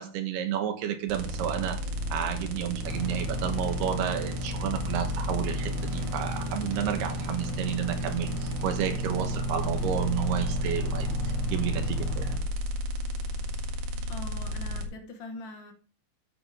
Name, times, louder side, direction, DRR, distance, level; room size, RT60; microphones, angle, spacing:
voice 1, 0.0-1.8 2.1-12.3, right 10 dB, 75° right, 6 dB, 3.1 m, -31 dB
sound 1, 1.1-14.8, equal, 60° right, 3.2 m, -32 dB
sound 2, 2.8-12.4, equal, 25° right, 4.1 m, -36 dB
voice 2, 14.1-15.7, left 2 dB, 80° left, 3 dB, 1.0 m, -42 dB
13.5 x 8.8 x 3.6 m, 0.39 s
omnidirectional pair, 4.8 m